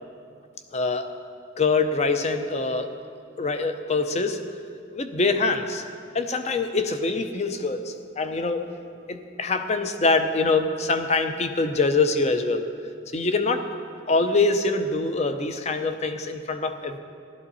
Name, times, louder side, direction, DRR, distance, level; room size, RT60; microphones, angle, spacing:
voice 1, 0.7-1.1 1.6-2.9 3.4-4.4 4.9-5.8 6.1-8.7 9.1-12.7 13.1-13.7 14.1-17.0, left 3 dB, 35° left, 8 dB, 0.6 m, -24 dB
15.0 x 12.0 x 4.1 m, 2.4 s
head